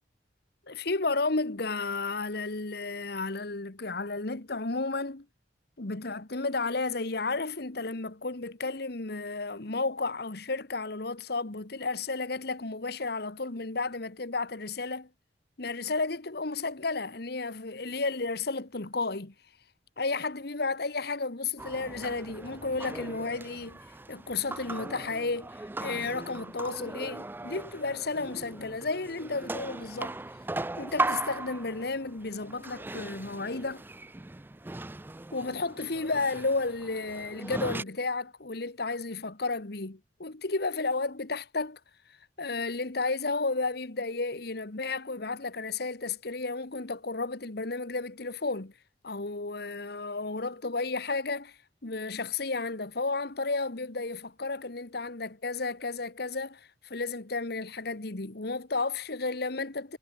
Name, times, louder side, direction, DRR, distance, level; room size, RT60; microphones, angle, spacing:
voice 1, 0.7-5.2 5.8-15.1 15.6-19.3 20.0-23.8 24.1-30.2 30.8-33.8 35.3-41.8 42.4-48.7 49.0-60.0, left 3 dB, 65° left, 1.5 m, -32 dB
sound 1, 21.6-37.8, right 2 dB, 10° right, 0.4 m, -38 dB
head